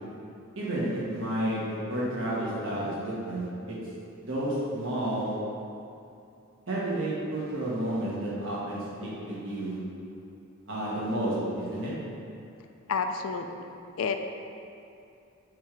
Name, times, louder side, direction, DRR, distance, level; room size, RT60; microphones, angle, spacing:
voice 1, 0.5-1.6 1.9-3.8 4.2-5.3 6.7-9.8 10.7-11.9, right 1 dB, 60° right, -7 dB, 1.5 m, -31 dB
voice 2, 12.9-14.2, left 5 dB, 70° left, 6 dB, 0.4 m, -31 dB
7.8 x 3.3 x 4.9 m, 2.6 s
head